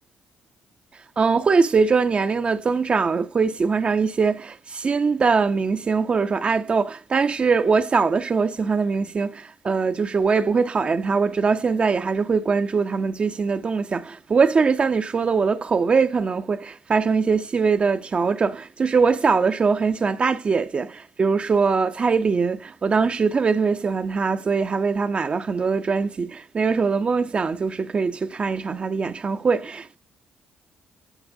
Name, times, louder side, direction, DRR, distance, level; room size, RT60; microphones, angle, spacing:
voice 1, 1.2-30.0, right 5 dB, 35° right, 0.5 m, -22 dB
13.0 x 4.3 x 2.6 m
cardioid pair, 90°, 3 cm